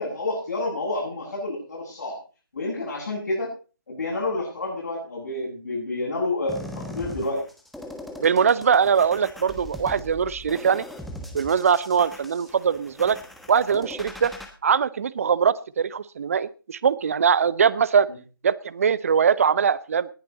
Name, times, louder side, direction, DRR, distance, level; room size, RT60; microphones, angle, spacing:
voice 1, 0.0-2.2 2.5-3.5 3.9-7.4, left 2 dB, 55° left, -5 dB, 7.5 m, -29 dB
sound 1, 6.5-14.5, left 1 dB, ahead, 1.3 m, -40 dB
voice 2, 8.2-10.8 11.3-13.2 13.5-14.3 14.6-18.1 18.4-20.1, right 7 dB, 40° right, 20 dB, 0.7 m, -21 dB
19.0 x 10.0 x 4.0 m, 0.35 s
figure-of-eight pair, 150°, 12 cm